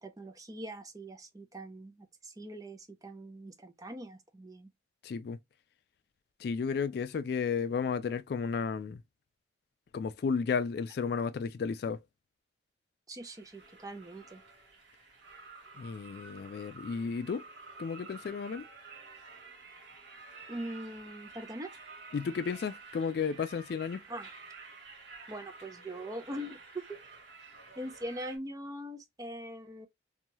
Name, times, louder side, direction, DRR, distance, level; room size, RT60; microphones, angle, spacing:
voice 1, 0.0-4.7 13.1-14.4 20.5-21.7 24.1-24.3 25.3-27.0 27.8-29.9, right 1 dB, 20° right, 0.4 m, -42 dB
voice 2, 5.0-5.4 6.4-9.0 9.9-12.0 15.8-17.4 17.8-18.6 22.1-24.0, left 5 dB, 60° left, 0.3 m, -33 dB
sound 1, 13.2-28.4, right 4 dB, 80° right, 1.0 m, -51 dB
2.7 x 2.2 x 2.9 m
head